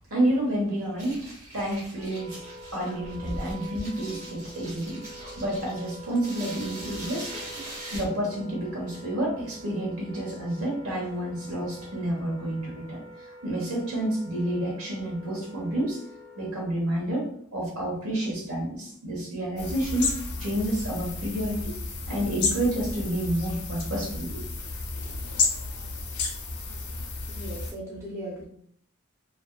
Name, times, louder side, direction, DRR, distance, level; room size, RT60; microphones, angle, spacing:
voice 1, 0.1-2.4 2.7-13.0 13.4-16.0 16.4-20.1 20.4-21.7 22.1-24.4 24.9-25.0, right 1 dB, 75° right, -2 dB, 1.0 m, -29 dB
sound 1, 1.0-8.0, right 1 dB, 30° right, 0.8 m, -41 dB
Wind instrument woodwind instrument, 2.0-16.8, right 1 dB, 55° right, 1.1 m, -46 dB
voice 2, 7.3-7.7 27.3-28.5, right 1 dB, 15° right, -5 dB, 0.5 m, -38 dB
sound 2, 19.6-27.7, left 4 dB, 80° left, 0.5 m, -32 dB
2.5 x 2.3 x 2.2 m, 0.65 s
head